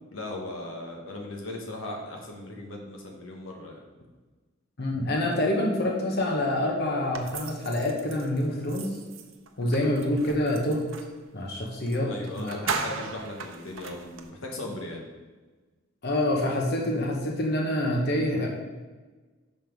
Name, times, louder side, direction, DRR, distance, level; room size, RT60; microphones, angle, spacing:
voice 1, 0.1-3.8 12.0-15.0, left 2 dB, 90° left, 0 dB, 1.1 m, -38 dB
voice 2, 4.8-9.0 9.6-10.9 11.3-12.7 16.0-18.5, left 1 dB, 55° left, -1 dB, 1.1 m, -27 dB
sound 1, 7.1-11.2 11.9-12.0 12.3-14.3, right 5 dB, 80° right, 0.6 m, -37 dB
5.8 x 5.4 x 4.6 m, 1.3 s
head